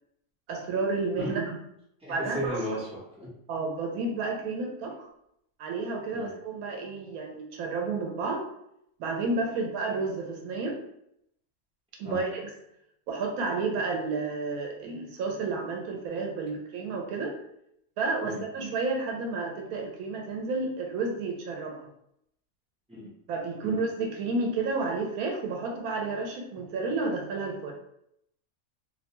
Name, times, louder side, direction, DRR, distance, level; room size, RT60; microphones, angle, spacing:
voice 1, 0.5-1.6 2.1-2.6 3.5-5.1 5.6-8.5 9.0-10.8 12.0-12.5 13.1-17.4 18.0-21.8 23.3-27.7, right 3 dB, 85° right, 1 dB, 1.0 m, -31 dB
voice 2, 2.0-3.3 6.1-6.3 12.0-12.2 18.2-18.4 22.9-23.1 23.6-23.8, equal, 5° right, -8 dB, 0.7 m, -35 dB
2.6 x 2.1 x 2.9 m, 0.76 s
omnidirectional pair, 1.5 m